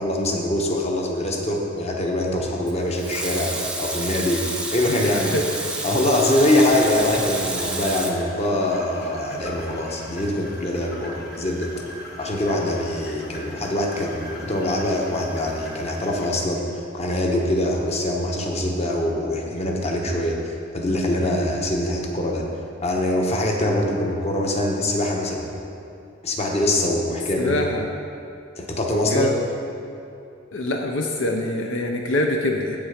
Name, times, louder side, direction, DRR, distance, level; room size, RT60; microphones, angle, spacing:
voice 1, 0.0-4.4 4.7-5.4 5.8-11.7 12.2-22.5 22.8-25.4 26.2-27.5 28.6-29.4, left 1 dB, 35° left, 0 dB, 1.0 m, -23 dB
Water tap faucet / Sink (filling or washing) / Liquid, 2.7-8.1, right 2 dB, 5° right, 0.7 m, -29 dB
voice 2, 4.9-5.5 27.4-27.9 29.0-29.4 30.5-32.8, left 1 dB, 70° left, 2 dB, 0.6 m, -25 dB
sound 1, 6.6-16.3, equal, 50° left, 1.4 m, -40 dB
8.1 x 7.2 x 5.1 m, 2.6 s
head